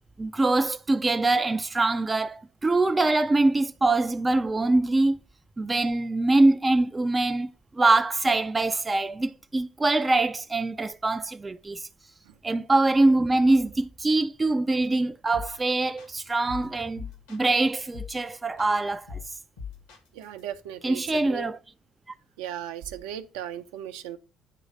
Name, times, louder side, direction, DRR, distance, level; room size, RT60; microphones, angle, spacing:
voice 1, 0.2-5.2 5.6-7.5 7.8-11.9 12.4-19.2 20.8-21.6, right 2 dB, 20° right, 0.4 m, -24 dB
sound 1, 15.3-15.7 16.0-17.6 17.9-18.3 18.6-20.4, left 6 dB, 70° left, 1.5 m, -40 dB
voice 2, 20.1-21.5 22.4-24.2, right 10 dB, 65° right, 0.6 m, -37 dB
9.2 x 3.1 x 5.2 m
figure-of-eight pair, 50°, 0 cm